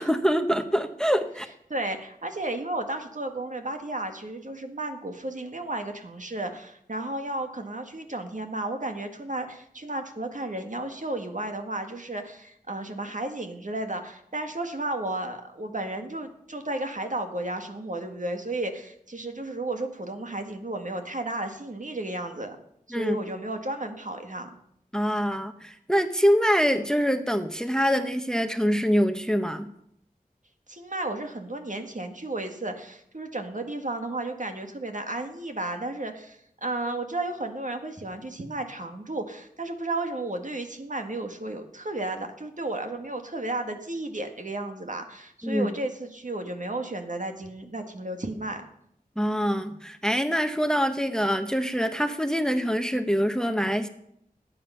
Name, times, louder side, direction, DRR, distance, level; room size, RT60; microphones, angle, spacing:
voice 1, 0.0-1.5 22.9-23.2 24.9-29.7 45.4-45.7 49.2-53.9, equal, 5° left, 8 dB, 1.0 m, -25 dB
voice 2, 1.7-22.6 22.9-24.5 30.7-48.7, right 2 dB, 60° right, 5 dB, 1.8 m, -33 dB
18.0 x 8.9 x 5.7 m, 0.73 s
wide cardioid pair, 50°, 15 cm